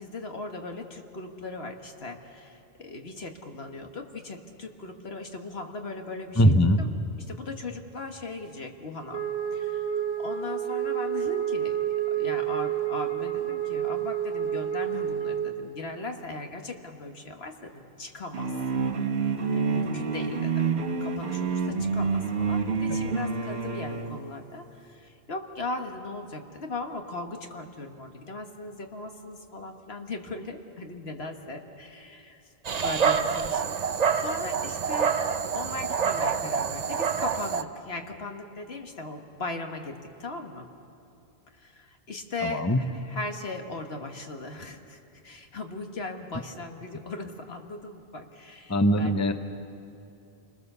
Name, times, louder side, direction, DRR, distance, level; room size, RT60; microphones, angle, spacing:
voice 1, 0.0-6.9 7.3-9.2 9.5-11.8 12.1-18.6 19.5-20.7 21.0-32.4 32.7-33.8 34.1-35.1 35.5-40.7 41.5-49.3, left 2 dB, 75° left, 4 dB, 1.8 m, -38 dB
voice 2, 6.4-6.8 22.9-23.0 42.4-42.8 48.7-49.3, equal, 20° left, 8 dB, 0.8 m, -21 dB
Wind instrument woodwind instrument, 9.1-15.5, right 10 dB, 70° right, 1.9 m, -29 dB
sound 1, 18.3-24.2, right 5 dB, 90° right, 1.4 m, -28 dB
Dog, 32.6-37.6, right 6 dB, 45° right, 0.7 m, -27 dB
29.0 x 21.0 x 6.8 m, 2.7 s
omnidirectional pair, 1.0 m